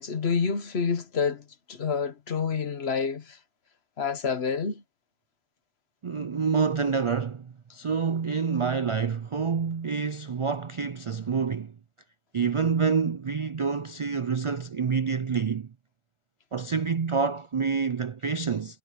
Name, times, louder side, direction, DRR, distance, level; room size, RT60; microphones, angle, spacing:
voice 1, 0.0-3.4 4.0-4.8, left 5 dB, 65° left, 1.4 m, -28 dB
voice 2, 6.0-11.7 12.3-15.7 16.5-18.8, right 5 dB, 55° right, 0.3 m, -27 dB
omnidirectional pair, 1.1 m